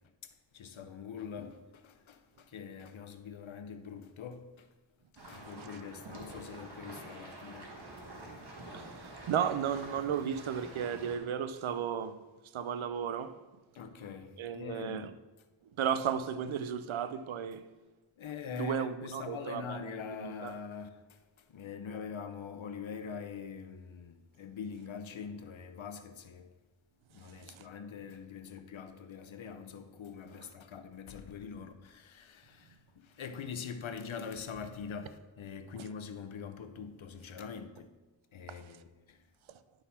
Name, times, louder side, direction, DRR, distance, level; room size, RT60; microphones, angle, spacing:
voice 1, 0.2-4.7 5.3-7.7 13.7-15.1 18.2-21.0 21.5-26.5 27.1-37.9 38.3-39.2, left 6 dB, 85° left, 0.7 m, -44 dB
sound 1, 5.2-11.2, right 2 dB, 55° right, 1.6 m, -47 dB
voice 2, 8.7-12.2 12.5-13.4 14.4-15.1 15.8-17.7 18.6-19.8 20.2-20.6 27.2-27.7 35.8-35.9 38.5-38.7, right 8 dB, 85° right, 0.5 m, -34 dB
11.0 x 3.9 x 4.2 m
wide cardioid pair, 55°, 46 cm